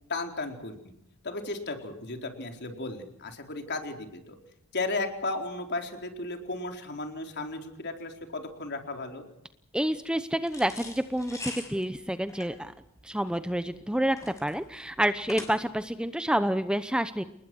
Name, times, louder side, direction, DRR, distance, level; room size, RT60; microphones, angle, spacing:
voice 1, 0.1-1.0 1.2-4.4 4.7-9.3, left 2 dB, 50° left, 4 dB, 4.3 m, -35 dB
voice 2, 9.7-12.7 13.0-17.2, right 1 dB, 5° right, 11 dB, 0.8 m, -28 dB
sound 1, 10.5-15.9, left 2 dB, 15° left, 6.2 m, -43 dB
29.0 x 20.0 x 6.3 m, 0.79 s
head